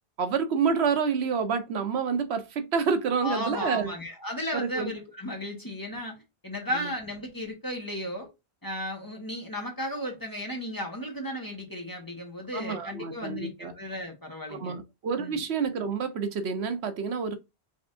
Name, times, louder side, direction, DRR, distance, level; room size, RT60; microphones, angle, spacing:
voice 1, 0.2-3.9 4.5-4.9 6.7-6.9 12.5-13.7 14.5-17.3, right 6 dB, 80° right, 1.0 m, -28 dB
voice 2, 3.2-6.2 6.4-8.3 8.6-14.8 15.2-15.4, left 1 dB, 20° left, 1.2 m, -35 dB
4.0 x 3.4 x 2.5 m
omnidirectional pair, 1.1 m